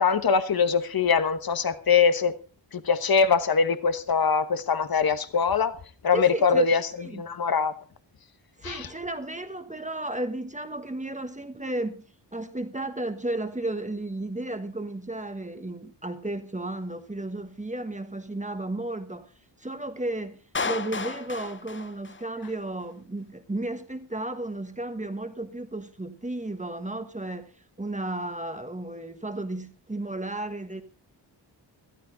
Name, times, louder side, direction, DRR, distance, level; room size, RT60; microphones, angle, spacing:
voice 1, 0.0-2.3 2.7-5.7 6.0-6.8 7.1-7.7 8.6-8.9, left 6 dB, 50° left, 1.2 m, -22 dB
voice 2, 6.1-6.7 7.0-7.2 8.6-12.0 12.3-19.3 19.6-27.5 27.8-30.8, right 2 dB, 15° right, 1.4 m, -33 dB
Clapping, 20.5-22.6, left 4 dB, 25° left, 0.7 m, -33 dB
14.5 x 14.0 x 4.0 m
wide cardioid pair, 135°, 44 cm